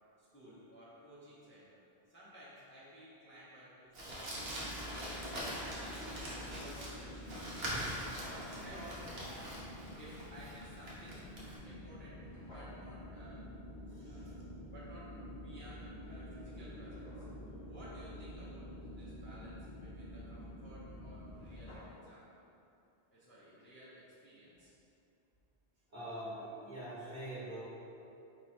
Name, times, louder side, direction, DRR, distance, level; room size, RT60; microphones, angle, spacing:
voice 1, 0.2-1.8 2.1-5.5 6.4-7.6 8.0-9.5 10.0-11.2 11.6-13.4 14.0-22.4 23.1-24.7, equal, 15° left, -10 dB, 0.6 m, -55 dB
Crumpling crinkling, 3.9-11.5, equal, 65° right, 1.1 m, -43 dB
sound 1, 4.3-21.8, equal, 50° left, 0.9 m, -48 dB
sound 2, 7.9-8.7 12.2-12.8 15.8-15.9 16.4-17.6 20.9-21.0 21.2-22.2, equal, 75° left, 1.5 m, -56 dB
voice 2, 13.9-14.3 25.9-27.6, right 1 dB, 45° right, -10 dB, 1.2 m, -44 dB
4.6 x 2.3 x 4.2 m, 2.7 s
omnidirectional pair, 1.1 m